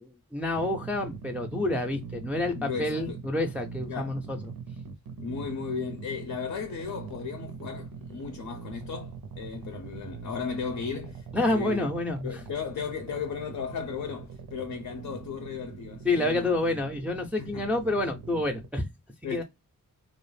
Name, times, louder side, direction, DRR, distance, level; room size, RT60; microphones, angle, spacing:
voice 1, 0.0-4.4 11.3-12.4 16.0-18.9 19.3-19.4, left 2 dB, 5° right, 0.4 m, -28 dB
sound 1, 0.5-18.7, right 5 dB, 85° right, 0.5 m, -42 dB
voice 2, 2.5-3.2 3.9-4.2 5.2-11.9 12.2-16.6 17.4-17.7 19.2-19.4, left 6 dB, 65° left, 0.5 m, -35 dB
2.3 x 2.0 x 3.1 m
wide cardioid pair, 105°, 34 cm